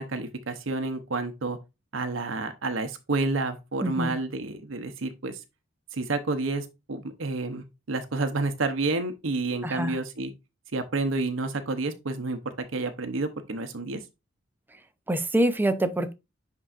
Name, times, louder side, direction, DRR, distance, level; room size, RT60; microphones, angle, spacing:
voice 1, 0.0-1.6 1.9-5.4 5.9-10.3 10.7-14.0, right 3 dB, 80° right, 0.8 m, -30 dB
voice 2, 3.8-4.1 9.6-9.9 15.1-16.1, right 1 dB, 10° right, 0.6 m, -25 dB
10.0 x 3.8 x 2.5 m
head